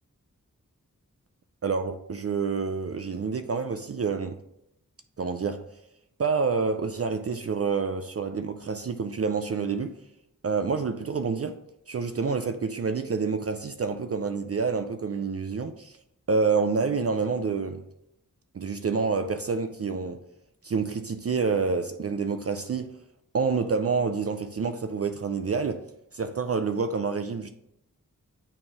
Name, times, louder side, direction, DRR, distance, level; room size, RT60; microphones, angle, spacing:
voice 1, 1.6-4.4 5.2-5.6 6.2-10.0 10.4-11.6 11.9-16.0 16.3-17.8 18.5-20.2 20.6-23.0 23.3-25.9 26.1-27.5, right 5 dB, 45° right, 0.4 m, -28 dB
8.8 x 3.2 x 3.5 m
wide cardioid pair, 55°, 34 cm